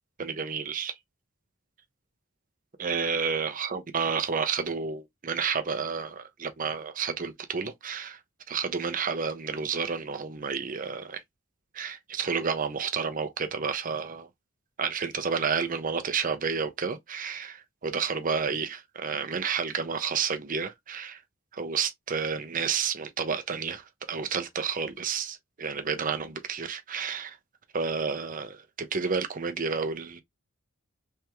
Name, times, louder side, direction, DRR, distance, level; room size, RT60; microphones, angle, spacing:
voice 1, 0.2-0.9 2.8-8.2 8.5-11.2 11.7-14.3 14.8-21.2 21.5-23.8 24.1-27.4 27.7-30.2, right 5 dB, 40° right, 0.6 m, -30 dB
3.4 x 3.4 x 2.9 m
head